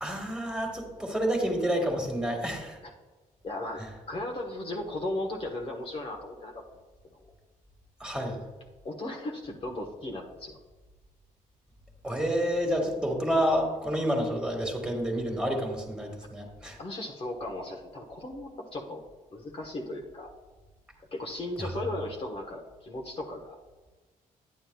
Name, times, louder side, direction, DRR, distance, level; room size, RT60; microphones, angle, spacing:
voice 1, 0.0-2.8 8.0-8.4 12.0-16.8 21.6-21.7, equal, 5° right, 1 dB, 1.9 m, -29 dB
voice 2, 3.4-3.8 4.1-6.6 7.1-7.2 8.8-10.6 16.8-19.0 19.3-20.3 21.1-23.6, left 1 dB, 40° left, 0 dB, 1.2 m, -36 dB
11.0 x 9.3 x 2.3 m, 1.3 s
cardioid pair, 95°, 14 cm